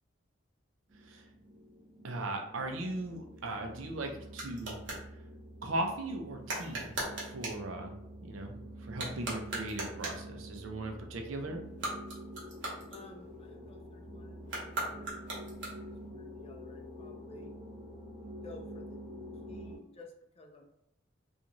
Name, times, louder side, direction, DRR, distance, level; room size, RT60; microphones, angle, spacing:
sound 1, 0.9-19.8, equal, 25° right, 0.9 m, -47 dB
voice 1, 2.0-4.8 5.6-7.0 7.2-7.9 8.2-8.5 8.8-11.6, right 2 dB, 85° right, 3 dB, 0.5 m, -38 dB
sound 2, 3.3-5.1 6.4-7.7 8.9-10.3 11.6-13.5 14.4-16.0, right 2 dB, 60° right, 0.9 m, -39 dB
voice 2, 12.9-17.5 18.4-19.0 19.5-20.7, left 2 dB, 30° left, 2 dB, 0.3 m, -53 dB
2.5 x 2.3 x 2.9 m, 0.77 s
head